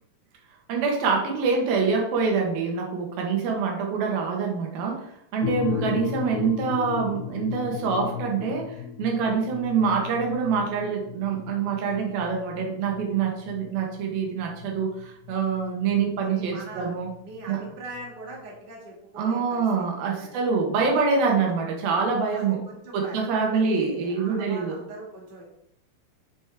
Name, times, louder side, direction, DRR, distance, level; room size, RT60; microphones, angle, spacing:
voice 1, 0.7-17.1 17.5-17.6 19.2-22.6 22.9-24.8, right 5 dB, 85° right, 1 dB, 3.2 m, -25 dB
sound 1, 5.4-18.4, left 9 dB, 80° left, 2.3 m, -36 dB
voice 2, 16.2-16.9 17.2-19.6 20.2-20.4 21.5-21.6 22.3-23.2 23.5-25.4, right 2 dB, 30° right, -2 dB, 1.0 m, -41 dB
7.7 x 6.4 x 3.6 m, 0.76 s
omnidirectional pair, 4.2 m